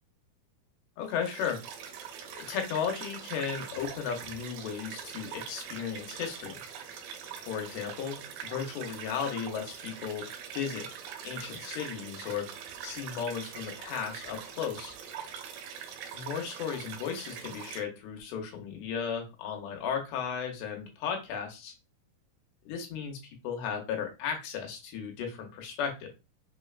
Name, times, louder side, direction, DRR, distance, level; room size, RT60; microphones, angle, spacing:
voice 1, 1.0-1.6 2.3-6.6 7.4-10.3 10.5-10.9 11.2-12.5 12.8-15.0 16.1-21.7 22.7-26.1, left 7 dB, 85° left, 2 dB, 3.0 m, -35 dB
sound 1, 1.0-17.8, right 8 dB, 85° right, 2.0 m, -43 dB
6.2 x 2.1 x 2.4 m, 0.27 s
omnidirectional pair, 4.6 m